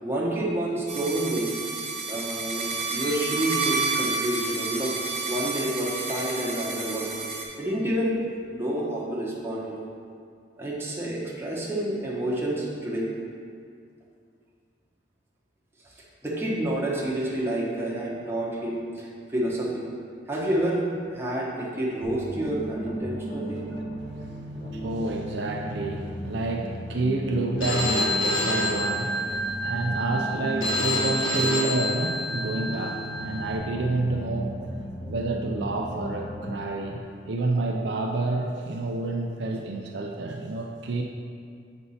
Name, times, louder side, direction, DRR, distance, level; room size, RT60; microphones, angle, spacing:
voice 1, 0.0-1.5 2.1-5.0 5.3-7.2 7.6-8.2 8.5-9.9 10.6-13.1 15.8-19.9 20.3-23.6, right 1 dB, 10° right, -6 dB, 1.1 m, -29 dB
sound 1, 0.9-7.4, right 4 dB, 30° right, 1.2 m, -30 dB
sound 2, 22.0-36.7, equal, 30° left, 1.1 m, -36 dB
voice 2, 24.0-34.7 35.1-41.0, right 2 dB, 60° right, 1 dB, 0.5 m, -29 dB
Telephone, 27.6-33.6, left 1 dB, 85° left, 1.3 m, -28 dB
7.8 x 5.3 x 4.2 m, 2.3 s
head